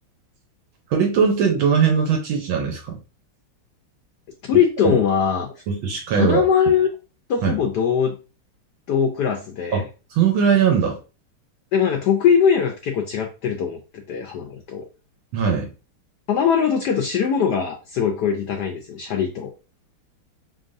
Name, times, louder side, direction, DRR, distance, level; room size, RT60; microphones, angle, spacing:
voice 1, 0.9-3.0 4.8-5.0 5.7-6.5 7.4-7.5 9.7-9.8 10.1-11.0 15.3-15.7, right 7 dB, 75° right, 2 dB, 1.6 m, -20 dB
voice 2, 4.4-5.5 6.1-6.9 7.3-8.2 8.9-9.9 11.7-14.9 16.3-19.5, left 7 dB, 70° left, 3 dB, 1.0 m, -21 dB
3.9 x 3.7 x 2.6 m, 0.32 s
omnidirectional pair, 2.3 m